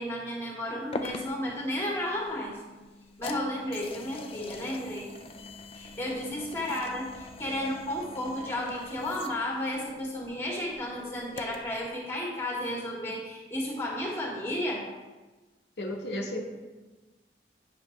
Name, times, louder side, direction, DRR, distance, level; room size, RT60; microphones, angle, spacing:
voice 1, 0.0-2.6 3.2-5.1 5.7-14.8, left 1 dB, 15° left, -2 dB, 1.6 m, -33 dB
sound 1, 0.9-11.8, left 3 dB, 30° left, 0.4 m, -44 dB
voice 2, 15.8-16.4, left 1 dB, 65° left, 0 dB, 0.9 m, -33 dB
9.2 x 5.9 x 3.2 m, 1.2 s
head